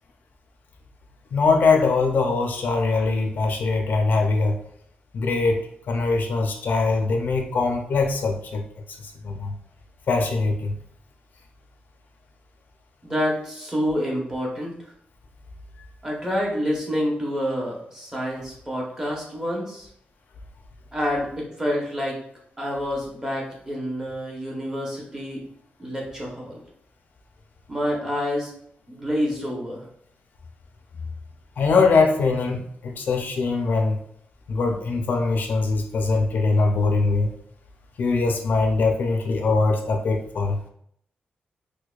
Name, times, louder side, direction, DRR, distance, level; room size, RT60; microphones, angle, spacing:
voice 1, 1.3-4.5 5.1-5.6 5.9-8.6 9.0-9.5 10.1-10.7 31.6-34.0 34.5-37.3 38.0-40.6, left 3 dB, 60° left, 3 dB, 0.5 m, -22 dB
voice 2, 13.0-14.7 16.0-19.9 20.9-22.2 22.6-25.4 25.8-26.6 27.7-28.5 28.9-29.8, equal, 15° right, -2 dB, 0.9 m, -28 dB
4.6 x 2.2 x 2.3 m, 0.68 s
wide cardioid pair, 155°, 4 cm